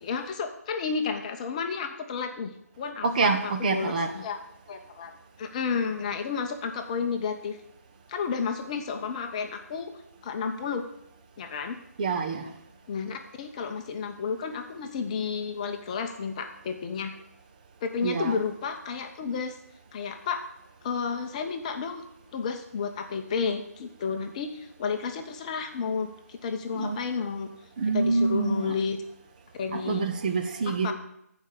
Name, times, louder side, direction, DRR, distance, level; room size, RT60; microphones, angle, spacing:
voice 1, 0.0-2.5 2.8-4.4 4.7-5.1 5.4-7.6 8.1-9.9 10.2-10.9 11.4-11.8 12.9-17.1 17.8-19.6 19.9-20.4 20.8-22.0 22.3-27.5 27.9-29.0 29.6-30.0 30.6-30.9, left 5 dB, 25° left, 0.9 m, -31 dB
voice 2, 3.0-4.1 12.0-12.5 18.0-18.4 26.7-27.0 27.8-28.8 29.7-30.9, right 4 dB, 30° right, 0.9 m, -26 dB
14.5 x 5.1 x 6.8 m
figure-of-eight pair, 155°, 9 cm